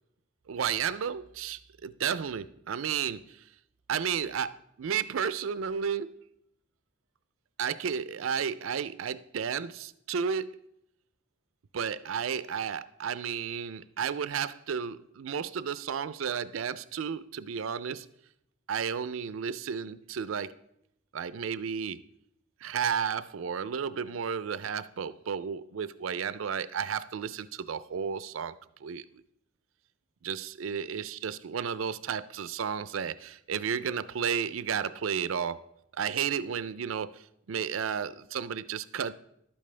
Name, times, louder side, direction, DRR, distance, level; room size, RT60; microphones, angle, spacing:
voice 1, 0.5-3.4 3.9-6.2 7.6-10.6 11.7-18.1 18.7-20.5 21.1-22.0 22.6-28.5 28.8-29.0 30.2-35.6 36.0-39.1, right 7 dB, 85° right, 0.5 m, -32 dB
12.0 x 8.7 x 3.3 m
head